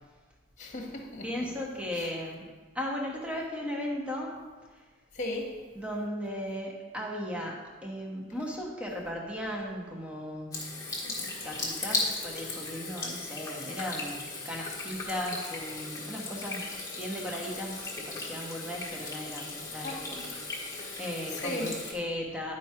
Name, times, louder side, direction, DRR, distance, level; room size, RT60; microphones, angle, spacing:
voice 1, 0.6-1.4 1.9-2.1 5.1-5.5 19.8-20.3 21.4-21.7, left 2 dB, 40° left, 1 dB, 1.3 m, -36 dB
voice 2, 1.2-2.5 2.7-4.3 5.7-10.7 11.4-20.2 20.6-20.7 21.0-22.5, left 1 dB, 5° right, -2 dB, 1.1 m, -36 dB
Water tap faucet / Sink (filling or washing), 10.5-21.9, left 2 dB, 15° left, 1.4 m, -37 dB
11.0 x 4.8 x 4.4 m, 1.4 s
head